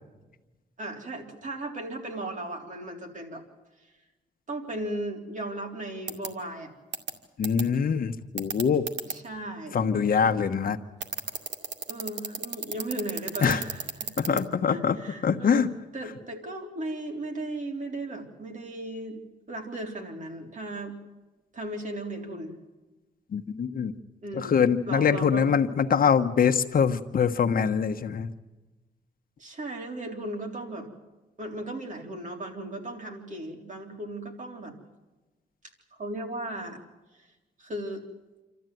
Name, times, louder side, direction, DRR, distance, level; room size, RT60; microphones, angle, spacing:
voice 1, 0.8-3.4 4.5-6.7 9.1-9.9 11.9-14.4 14.7-15.7 15.9-19.2 19.5-21.0 21.5-22.5 24.2-25.6 29.4-30.9 31.4-34.8 35.9-36.8 37.1-37.3 37.6-38.1, right 1 dB, 45° right, 2 dB, 3.8 m, -36 dB
sound 1, 6.1-6.3 6.9-7.1 7.4-7.6 8.4-9.1 11.0-14.4, right 6 dB, 80° right, 2.3 m, -31 dB
voice 2, 7.4-8.9 9.7-10.8 13.4-13.6 14.2-15.0 15.2-15.7 23.3-23.9 24.3-28.3, left 6 dB, 55° left, 8 dB, 1.1 m, -24 dB
27.5 x 13.5 x 9.3 m, 1.1 s
cardioid pair, 120°, 18 cm